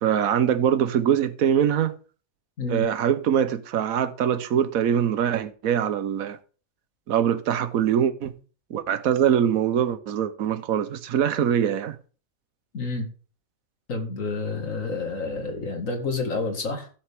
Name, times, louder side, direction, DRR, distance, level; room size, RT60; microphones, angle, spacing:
voice 1, 0.0-1.9 2.7-6.4 7.1-8.3 8.7-12.0, right 9 dB, 85° right, 1.3 m, -23 dB
voice 2, 12.7-13.1 13.9-16.9, left 3 dB, 70° left, 2.3 m, -29 dB
15.5 x 6.7 x 3.5 m
omnidirectional pair, 1.4 m